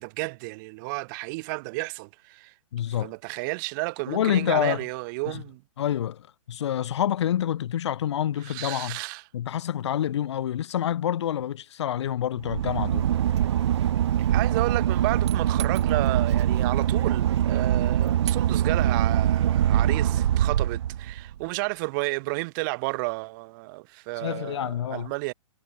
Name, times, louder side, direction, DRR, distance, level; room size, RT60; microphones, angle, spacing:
voice 1, 0.0-2.5 3.0-5.6 8.4-9.2 14.3-25.3, right 27 dB, 35° right, 2.3 m, -32 dB
voice 2, 2.7-3.1 4.1-4.8 5.3-5.4 5.8-9.0 9.3-13.1 24.2-25.1, left 10 dB, 55° left, 1.7 m, -27 dB
Boat Water vehicle / Engine, 12.4-21.4, right 11 dB, 55° right, 0.7 m, -23 dB
figure-of-eight pair, 120°, 17 cm